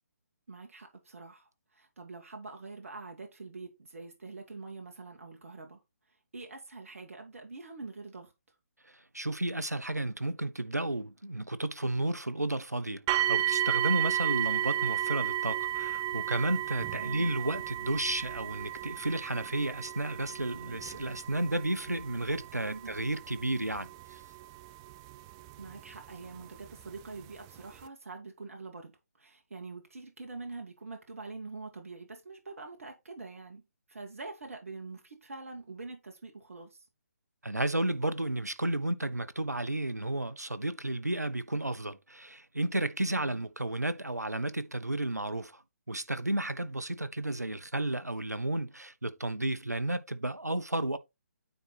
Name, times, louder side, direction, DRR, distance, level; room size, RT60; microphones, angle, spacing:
voice 1, 0.5-5.8 6.3-8.3 17.0-17.4 22.7-22.9 25.6-28.9 29.2-33.6 33.9-36.8 43.1-43.5, right 3 dB, 55° right, 1.8 m, -45 dB
voice 2, 9.1-24.2 37.4-45.6 45.9-51.0, right 1 dB, 90° right, 0.8 m, -32 dB
sound 1, 13.1-26.0 26.8-26.9 27.5-27.6, right 12 dB, 15° right, 0.4 m, -33 dB
9.3 x 4.0 x 4.1 m
figure-of-eight pair, 140°, 9 cm